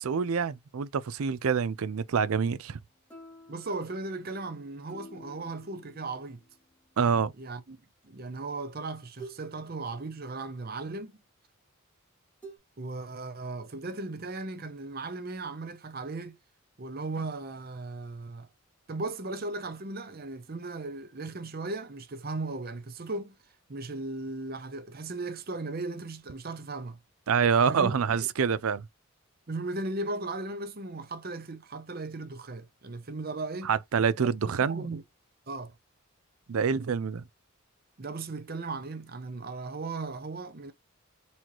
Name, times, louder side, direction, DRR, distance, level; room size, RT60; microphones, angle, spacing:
voice 1, 0.0-2.8 7.0-7.3 27.3-28.8 33.6-34.9 36.5-37.2, right 6 dB, 75° right, 0.4 m, -26 dB
sound 1, 3.1-6.7 8.1-8.2 9.2-9.5 9.8-10.7 12.4-12.6, right 2 dB, 5° left, 1.3 m, -49 dB
voice 2, 3.5-6.4 7.4-7.8 8.0-11.2 12.8-16.4 16.8-18.5 18.9-23.4 23.7-27.0 27.7-28.3 29.5-33.7 34.4-35.0 35.5-35.8 38.0-40.7, right 3 dB, 40° right, 0.7 m, -37 dB
4.2 x 3.0 x 2.9 m
head